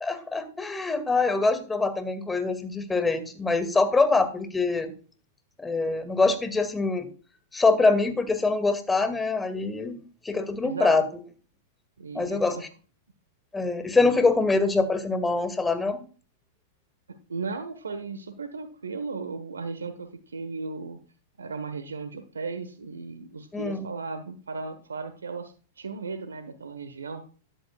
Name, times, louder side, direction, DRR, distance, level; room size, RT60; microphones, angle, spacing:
voice 1, 0.0-4.9 5.6-7.1 7.5-11.0 12.1-12.6 13.5-16.0 23.5-23.9, left 3 dB, 10° left, 9 dB, 2.2 m, -24 dB
voice 2, 10.6-11.0 12.0-12.6 17.1-21.0 21.4-27.2, right 4 dB, 90° right, 9 dB, 1.3 m, -36 dB
13.5 x 11.0 x 2.4 m, 0.38 s
hypercardioid pair, 105°, 0 cm